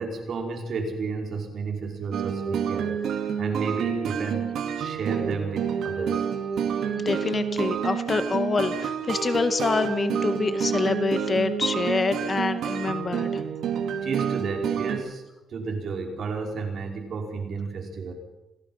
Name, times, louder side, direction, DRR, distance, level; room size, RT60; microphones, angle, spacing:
voice 1, 0.0-6.3 14.0-18.1, right 4 dB, 60° right, 2 dB, 5.3 m, -32 dB
sound 1, 2.1-15.0, right 8 dB, 75° right, 2.6 m, -28 dB
voice 2, 6.9-13.4, left 4 dB, 35° left, 10 dB, 1.7 m, -26 dB
27.0 x 17.5 x 5.8 m, 0.95 s
cardioid pair, 90°, 0 cm